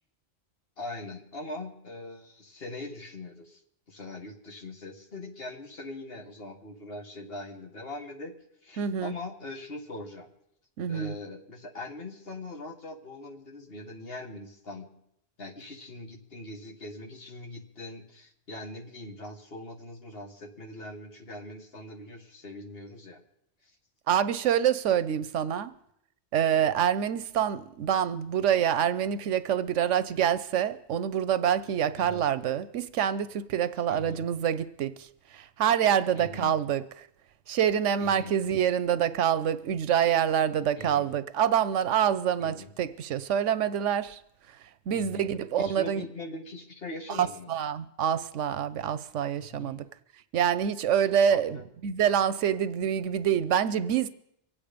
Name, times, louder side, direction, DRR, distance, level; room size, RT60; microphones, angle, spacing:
voice 1, 0.8-3.6 3.9-8.3 8.6-10.3 10.9-14.9 15.4-23.2 23.6-23.7 32.0-32.2 33.9-34.3 36.1-36.6 38.0-38.4 40.8-41.1 42.4-42.7 44.9-45.3 45.6-47.5 49.4-49.8 51.3-51.6, left 2 dB, 55° left, 1.7 m, -41 dB
voice 2, 8.8-9.1 10.8-11.1 24.1-25.7 26.3-35.1 35.3-36.8 37.5-44.2 44.9-46.0 47.1-49.8 50.3-54.1, right 9 dB, 90° right, 1.1 m, -26 dB
24.5 x 8.7 x 5.1 m
omnidirectional pair, 1.2 m